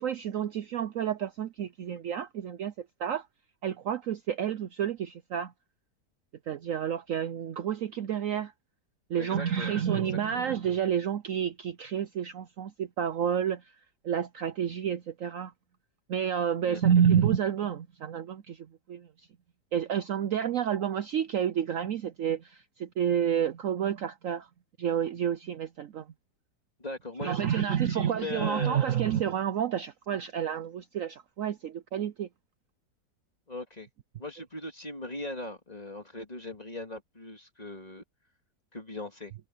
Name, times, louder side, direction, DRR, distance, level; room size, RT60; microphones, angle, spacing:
voice 1, 0.0-2.7 3.0-3.3 3.6-5.5 6.5-8.5 9.1-13.6 14.0-15.5 16.1-19.1 19.7-24.5 24.8-26.0 27.2-32.3, right 9 dB, 60° right, 0.9 m, -29 dB
voice 2, 9.2-10.0 10.3-10.5 16.6-16.9 26.8-29.0 33.5-33.9 34.2-38.0 38.7-39.3, left 2 dB, 25° left, 2.5 m, -39 dB
omnidirectional pair, 1.8 m